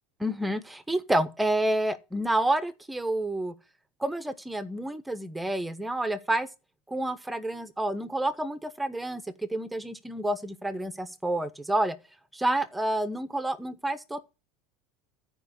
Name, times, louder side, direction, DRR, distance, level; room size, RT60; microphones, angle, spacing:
voice 1, 0.2-3.5 4.0-6.5 6.9-12.0 12.3-14.2, right 1 dB, 5° right, 1.1 m, -29 dB
13.5 x 5.2 x 8.2 m
supercardioid pair, 145°, 0 cm